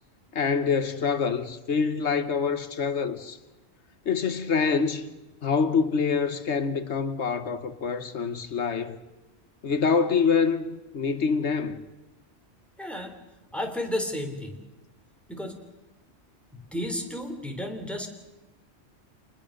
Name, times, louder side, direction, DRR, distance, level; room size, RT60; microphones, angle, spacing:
voice 1, 0.3-3.4 4.0-5.1 5.4-9.0 9.6-11.8, left 5 dB, 80° left, 1.4 m, -26 dB
voice 2, 12.8-13.1 13.5-14.6 15.3-15.6 16.5-18.1, left 1 dB, ahead, 3.4 m, -32 dB
27.0 x 20.5 x 6.5 m
omnidirectional pair, 1.1 m